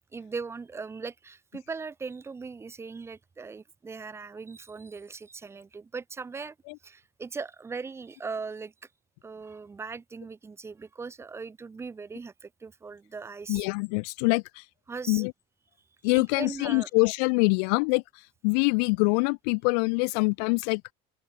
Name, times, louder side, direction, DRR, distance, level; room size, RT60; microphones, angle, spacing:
voice 1, 0.1-6.5 6.8-8.7 9.2-13.7 14.9-15.2 16.1-16.9, right 4 dB, 10° right, 2.2 m, -39 dB
voice 2, 13.5-14.4 15.1-15.3 16.0-18.0 18.4-20.8, left 34 dB, 70° left, 0.8 m, -24 dB
open air
cardioid pair, 175°, 21 cm